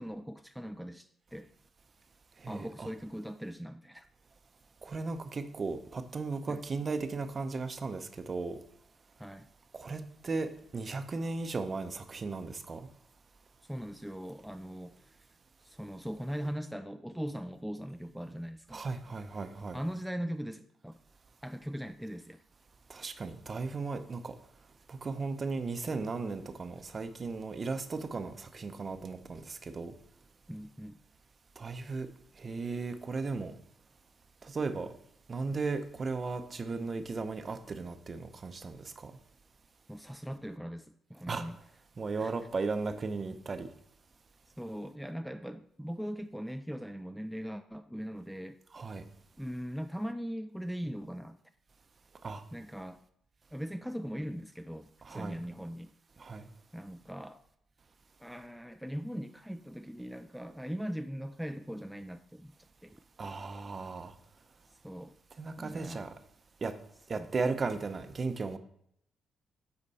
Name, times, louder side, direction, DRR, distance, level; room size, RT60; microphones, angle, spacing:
voice 1, 0.0-1.5 2.5-4.0 6.5-6.6 9.2-9.5 13.7-15.2 15.6-18.8 19.7-21.0 21.4-22.4 30.5-31.0 39.9-41.6 42.2-42.3 44.6-48.6 49.4-51.4 52.5-53.0 53.5-55.9 56.7-57.4 58.2-62.5 62.8-63.0 64.8-65.2 65.6-66.1 67.2-67.3, equal, ahead, 0.3 m, -40 dB
voice 2, 2.4-2.9 4.8-8.6 9.7-12.9 18.7-19.8 22.9-24.4 24.9-29.9 31.6-32.1 32.4-33.6 34.4-34.9 35.3-39.1 41.3-41.5 42.0-43.7 48.7-49.0 52.2-52.4 55.0-55.4 56.2-56.5 63.2-64.1 65.4-66.1 66.6-66.7 67.1-68.6, right 4 dB, 35° right, 0.6 m, -36 dB
8.2 x 4.4 x 4.1 m
cardioid pair, 90°, 0 cm